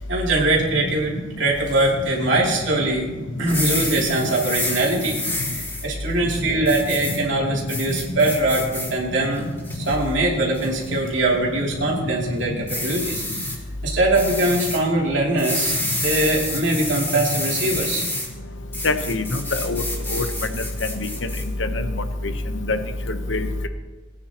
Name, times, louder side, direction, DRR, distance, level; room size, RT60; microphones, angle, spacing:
voice 1, 0.1-3.1 3.4-5.2 5.4-9.5 9.7-13.2 13.8-18.0, right 2 dB, 75° right, -3 dB, 3.0 m, -22 dB
sound 1, 3.4-5.8 6.7-7.2 7.7-8.9 9.4-9.9 10.5-10.9 12.7-13.6 14.1-14.8 15.4-18.3 18.7-21.4, left 2 dB, 15° left, 4.1 m, -28 dB
voice 2, 18.8-19.8 20.1-20.2 20.5-20.6 21.0-21.1 21.6-21.7 22.7-22.8 23.3-23.7, left 3 dB, 80° left, 9 dB, 1.0 m, -24 dB
21.0 x 9.6 x 3.0 m, 1.3 s
head